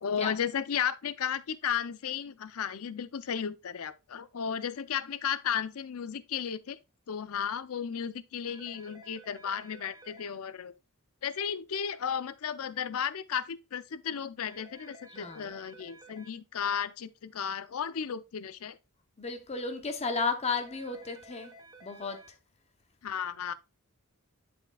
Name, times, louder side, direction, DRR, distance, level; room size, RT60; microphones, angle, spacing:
voice 1, 0.0-6.8 7.1-10.7 11.2-18.8 23.0-23.5, left 8 dB, 70° left, 0.5 m, -34 dB
sound 1, 8.5-10.3 14.5-16.3 20.5-22.3, right 1 dB, 20° right, 0.9 m, -53 dB
voice 2, 15.1-15.5 19.2-21.5 21.8-22.2, left 4 dB, 30° left, 0.7 m, -33 dB
11.5 x 4.3 x 2.3 m
head